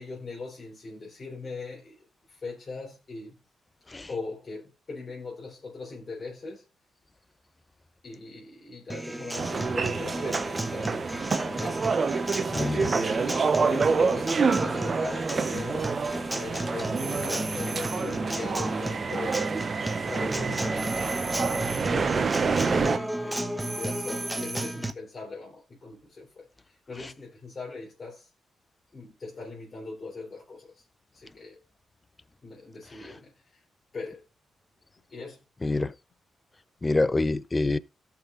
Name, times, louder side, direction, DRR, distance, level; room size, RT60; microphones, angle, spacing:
voice 1, 0.0-3.4 4.1-6.7 8.0-12.2 12.8-21.0 21.5-28.3 28.9-30.8 31.1-31.6 32.4-33.6 33.9-34.2 35.1-35.4, left 3 dB, 45° left, 3.6 m, -40 dB
Acoustic guitar, 8.9-24.9, right 1 dB, 10° right, 1.1 m, -34 dB
sound 1, 9.3-23.0, right 5 dB, 50° right, 0.9 m, -28 dB
voice 2, 12.5-12.9 35.6-35.9 36.8-37.8, left 2 dB, 25° left, 0.6 m, -26 dB
sound 2, 17.0-18.2 20.8-22.0 23.6-24.8, right 2 dB, 30° right, 2.2 m, -38 dB
17.5 x 5.9 x 2.5 m
supercardioid pair, 50°, 0 cm